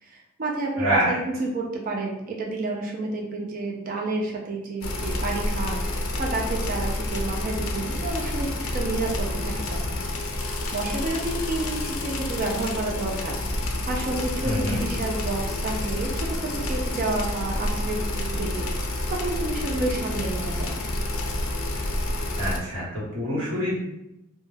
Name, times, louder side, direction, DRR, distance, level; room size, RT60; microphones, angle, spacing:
voice 1, 0.0-10.0 10.7-13.4 13.9-20.8, right 2 dB, 40° right, 0 dB, 0.3 m, -30 dB
voice 2, 0.8-1.2 14.4-14.8 22.4-23.8, equal, 65° right, -8 dB, 1.2 m, -25 dB
sound 1, 4.8-22.6, left 1 dB, 70° left, 0.4 m, -29 dB
2.2 x 2.1 x 3.2 m, 0.89 s
head